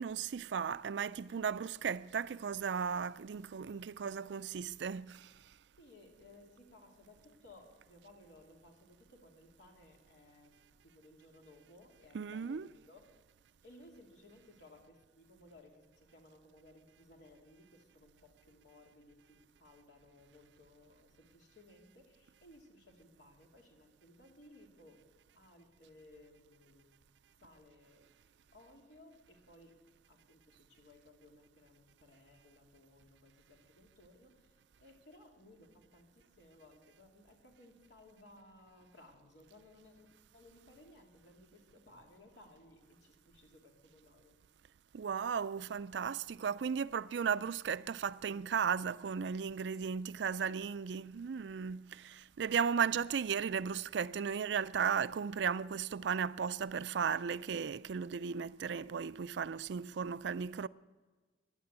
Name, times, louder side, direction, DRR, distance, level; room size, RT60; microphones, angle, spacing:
voice 1, 0.0-5.4 12.1-12.6 44.9-60.7, right 6 dB, 75° right, 0.4 m, -35 dB
voice 2, 5.8-13.0 13.6-27.0 27.4-29.8 30.1-40.1 40.3-44.4 49.7-49.9 50.9-51.0, left 1 dB, 75° left, 2.9 m, -60 dB
15.5 x 11.5 x 8.2 m
head